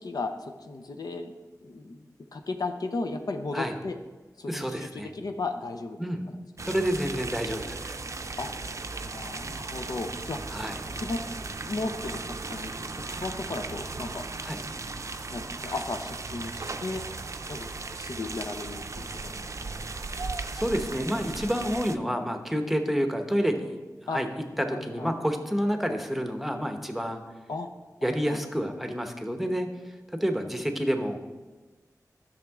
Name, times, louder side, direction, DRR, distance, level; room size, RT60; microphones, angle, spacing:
voice 1, 0.0-1.3 1.6-2.1 2.3-3.9 4.4-6.0 6.3-6.8 8.4-8.5 9.0-10.4 10.9-11.3 11.6-14.3 15.3-17.0 17.5-19.4 24.1-24.2 24.7-25.1 27.5-27.7 28.0-28.4, left 3 dB, 80° left, 6 dB, 0.6 m, -35 dB
voice 2, 4.5-5.1 6.0-6.2 6.6-8.0 10.5-10.8 14.4-14.6 20.5-23.8 24.1-24.3 24.6-27.2 28.0-29.7 30.1-31.2, equal, ahead, 5 dB, 0.9 m, -29 dB
sound 1, 6.6-22.0, right 3 dB, 50° right, 0.5 m, -37 dB
11.5 x 6.3 x 3.6 m, 1.2 s
wide cardioid pair, 65°, 7 cm